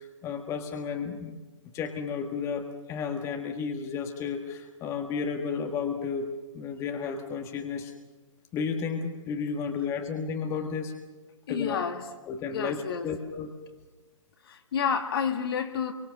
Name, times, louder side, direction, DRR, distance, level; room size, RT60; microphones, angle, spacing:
voice 1, 0.0-1.4 1.7-7.9 8.5-10.9 11.5-11.8 12.3-13.5, left 6 dB, 20° left, 4 dB, 1.7 m, -32 dB
voice 2, 11.5-12.0 12.5-13.1 14.4-15.9, left 7 dB, 45° left, 5 dB, 2.3 m, -30 dB
27.5 x 24.0 x 6.6 m, 1.2 s
figure-of-eight pair, 130°, 17 cm